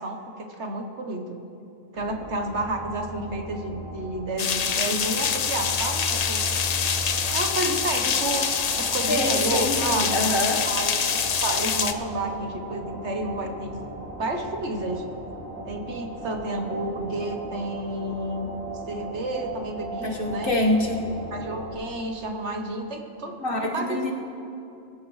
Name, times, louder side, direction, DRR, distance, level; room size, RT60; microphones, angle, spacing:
voice 1, 0.0-1.4 1.9-6.5 7.3-8.5 8.8-10.3 10.6-13.7 14.2-15.0 15.6-18.5 18.9-20.5 21.3-24.0, right 2 dB, 55° right, 3 dB, 1.3 m, -31 dB
sound 1, 2.0-21.7, right 1 dB, 10° left, 4.6 m, -37 dB
sound 2, 4.4-11.9, left 6 dB, 70° left, 0.3 m, -25 dB
voice 2, 9.1-10.7 20.0-21.0 23.4-24.1, left 1 dB, 40° left, 0 dB, 1.5 m, -25 dB
24.0 x 15.0 x 3.2 m, 2.7 s
omnidirectional pair, 1.4 m